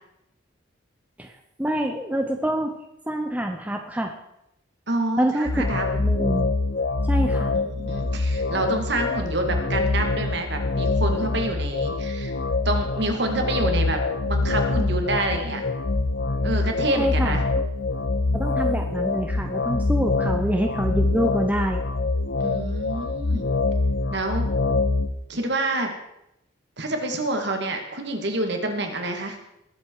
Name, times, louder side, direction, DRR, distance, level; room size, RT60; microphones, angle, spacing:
voice 1, 1.6-2.7 3.1-4.1 5.2-5.6 5.9-6.5 7.1-7.5 17.0-17.4 18.3-21.8, right 1 dB, 5° right, 4 dB, 0.8 m, -26 dB
voice 2, 4.9-5.9 7.5-12.3 12.6-14.0 14.3-15.6 16.4-17.4 22.4-23.5 24.1-24.5 25.3-25.9 26.8-29.4, right 2 dB, 55° right, 4 dB, 2.2 m, -27 dB
sound 1, 5.5-25.1, left 3 dB, 50° left, 0.8 m, -25 dB
20.5 x 8.0 x 4.8 m, 0.85 s
head